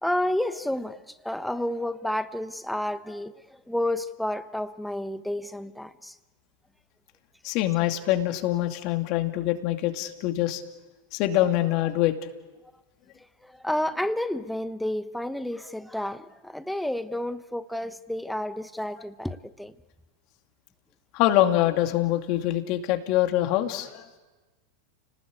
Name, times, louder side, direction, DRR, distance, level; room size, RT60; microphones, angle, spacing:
voice 1, 0.0-6.2 13.4-19.7, left 1 dB, ahead, 12 dB, 1.1 m, -30 dB
voice 2, 7.4-10.6 11.1-12.1 21.1-24.1, left 14 dB, 55° left, 6 dB, 2.5 m, -24 dB
29.5 x 19.5 x 8.6 m, 1.2 s
hypercardioid pair, 100°, 0 cm